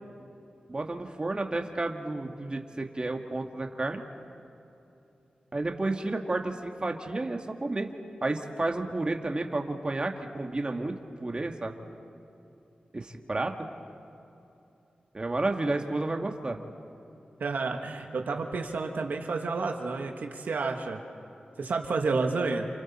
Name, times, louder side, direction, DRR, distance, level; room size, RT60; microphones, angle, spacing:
voice 1, 0.7-4.0 5.5-7.9 8.2-11.7 12.9-13.5 15.1-16.6, right 2 dB, 35° right, 3 dB, 1.8 m, -31 dB
voice 2, 17.4-21.0 21.6-22.7, right 4 dB, 80° right, 3 dB, 1.6 m, -30 dB
29.0 x 28.5 x 4.4 m, 2.8 s
wide cardioid pair, 70°, 3 cm